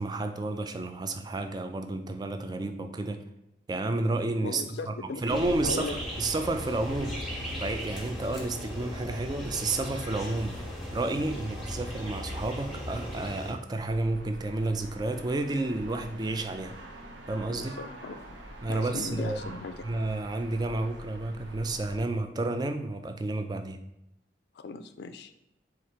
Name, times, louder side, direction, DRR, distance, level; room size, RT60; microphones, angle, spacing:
voice 1, 0.0-3.2 3.7-10.7 10.9-16.7 17.3-17.8 18.6-19.6 19.8-23.8, right 2 dB, 25° right, 7 dB, 0.3 m, -31 dB
voice 2, 4.4-5.9 17.5-18.4 18.7-19.7 24.6-25.3, left 4 dB, 65° left, 10 dB, 0.4 m, -38 dB
sound 1, 5.3-13.5, equal, ahead, 0.9 m, -37 dB
sound 2, 13.7-22.0, right 1 dB, 85° right, 0.8 m, -46 dB
4.2 x 2.4 x 4.6 m, 0.87 s
head